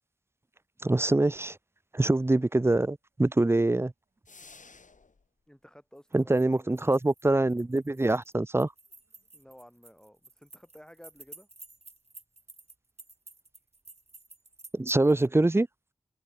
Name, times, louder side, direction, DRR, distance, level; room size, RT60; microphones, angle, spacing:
voice 1, 0.8-1.6 1.9-3.9 6.1-8.7 14.7-15.7, right 2 dB, 20° right, 0.5 m, -24 dB
sound 1, 4.2-5.3, left 4 dB, 75° left, 4.0 m, -52 dB
voice 2, 5.5-6.8 9.3-11.5, equal, 5° left, 7.7 m, -53 dB
sound 2, 6.0-15.3, right 3 dB, 55° right, 7.0 m, -52 dB
wide cardioid pair, 60°, 13 cm